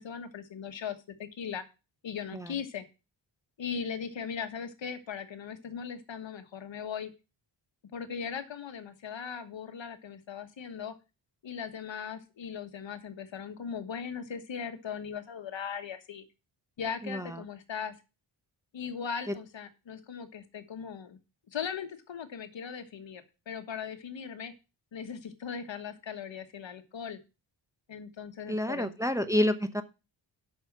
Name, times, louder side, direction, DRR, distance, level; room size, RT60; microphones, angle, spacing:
voice 1, 0.0-1.6 2.0-2.8 3.6-7.1 7.9-10.9 11.4-16.2 16.8-17.9 18.7-21.2 21.5-24.5 24.9-27.2 27.9-28.9, left 7 dB, 70° left, 9 dB, 1.5 m, -39 dB
voice 2, 17.0-17.4 19.3-19.4 28.5-29.8, left 1 dB, 5° right, 8 dB, 0.9 m, -28 dB
8.1 x 6.4 x 6.0 m, 0.29 s
wide cardioid pair, 85°, 46 cm